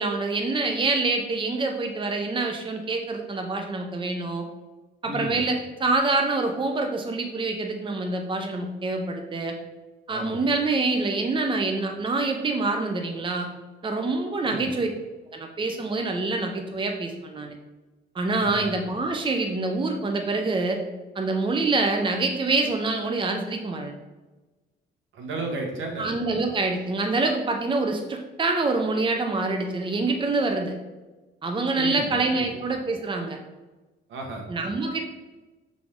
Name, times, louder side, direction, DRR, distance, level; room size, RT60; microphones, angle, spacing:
voice 1, 0.0-4.4 5.0-9.5 10.1-13.5 13.8-14.9 15.3-17.5 18.1-20.8 21.2-23.9 26.0-30.7 31.4-33.4 34.5-35.0, right 3 dB, 25° right, 4 dB, 0.8 m, -26 dB
voice 2, 5.0-5.5 10.1-10.5 14.4-14.7 18.4-18.6 25.1-26.1 31.8-32.5 34.1-34.4, right 2 dB, 75° right, 1 dB, 1.7 m, -33 dB
7.3 x 4.1 x 3.7 m, 1.2 s
cardioid pair, 90°, 20 cm